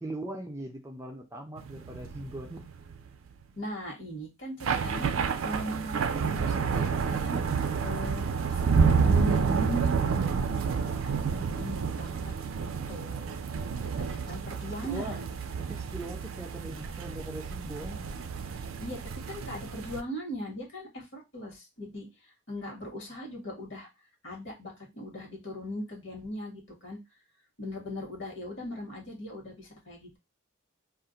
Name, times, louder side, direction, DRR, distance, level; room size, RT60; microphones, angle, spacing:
voice 1, 0.0-2.7 14.5-15.2 15.6-18.1, right 1 dB, 15° right, 0.4 m, -40 dB
sound 1, 1.6-3.3 4.6-20.0, right 5 dB, 75° right, 0.4 m, -29 dB
voice 2, 3.6-5.1 5.4-10.3 10.7-13.3 13.7-15.3 18.8-19.0 19.3-22.1 22.5-23.9 24.2-27.0 27.6-30.2, equal, 55° left, 1.2 m, -39 dB
2.4 x 2.1 x 3.8 m
head